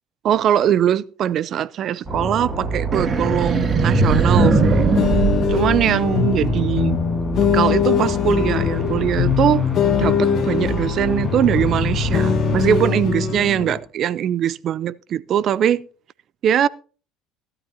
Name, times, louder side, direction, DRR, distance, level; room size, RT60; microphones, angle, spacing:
voice 1, 0.2-4.9 5.5-7.0 7.4-9.7 10.0-15.8 16.4-16.7, right 10 dB, 55° right, 0.5 m, -21 dB
sound 1, 2.0-12.8, right 1 dB, 15° right, 7.4 m, -27 dB
sound 2, 2.9-6.4, right 3 dB, 40° right, 2.2 m, -19 dB
sound 3, 4.3-13.8, left 8 dB, 55° left, 1.5 m, -22 dB
15.5 x 12.0 x 2.8 m
hypercardioid pair, 70°, 0 cm